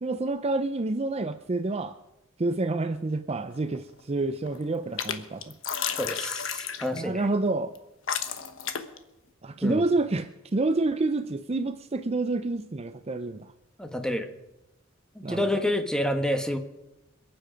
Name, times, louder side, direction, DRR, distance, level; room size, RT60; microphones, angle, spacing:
voice 1, 0.0-2.0 2.4-5.5 6.9-7.7 9.4-13.5 15.2-15.6, right 2 dB, 30° right, 11 dB, 0.5 m, -28 dB
sound 1, 3.5-4.0 4.3-5.1 5.4-7.0 7.7-7.8 8.1-9.0, left 8 dB, 75° left, 1.3 m, -32 dB
voice 2, 6.0-7.2 9.6-9.8 13.8-14.3 15.1-16.6, left 1 dB, 5° left, 6 dB, 1.3 m, -28 dB
27.0 x 9.1 x 5.1 m, 0.95 s
head